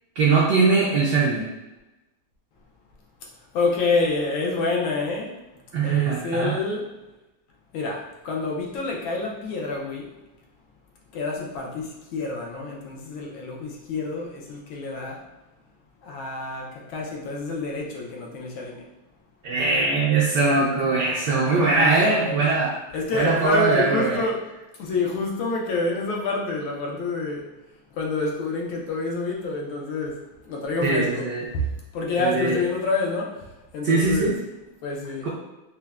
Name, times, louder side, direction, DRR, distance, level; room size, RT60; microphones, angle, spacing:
voice 1, 0.2-1.5 5.7-6.6 19.4-22.7 23.1-24.2 30.8-31.4 32.2-32.6 33.8-34.4 35.2-35.3, right 3 dB, 70° right, -5 dB, 1.0 m, -21 dB
voice 2, 3.5-5.3 5.8-6.9 7.7-10.1 11.1-15.2 16.0-18.8 21.4-22.4 22.9-24.4 24.8-27.5 27.9-31.3 31.5-31.7 31.9-33.5 33.7-34.4 34.8-35.3, left 3 dB, 75° left, -1 dB, 1.4 m, -27 dB
5.4 x 2.1 x 2.3 m, 1.0 s
omnidirectional pair, 2.4 m